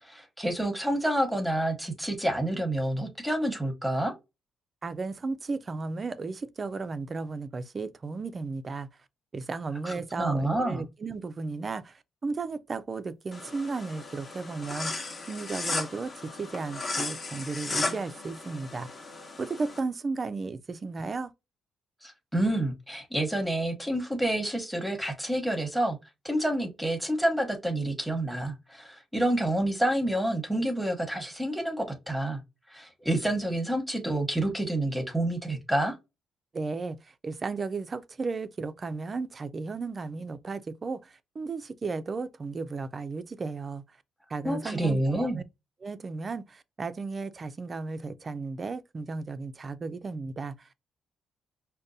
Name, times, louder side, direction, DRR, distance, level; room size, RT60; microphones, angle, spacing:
voice 1, 0.0-4.1 9.8-10.8 22.0-26.0 26.2-32.4 32.7-36.0 44.4-45.4, right 1 dB, ahead, 0.8 m, -28 dB
voice 2, 4.8-8.9 9.3-18.9 19.4-21.3 36.5-43.8 44.3-45.4 45.8-50.7, right 4 dB, 35° right, 0.3 m, -34 dB
sound 1, 13.3-19.8, left 3 dB, 35° left, 0.8 m, -35 dB
5.1 x 2.2 x 2.6 m
cardioid pair, 90°, 0 cm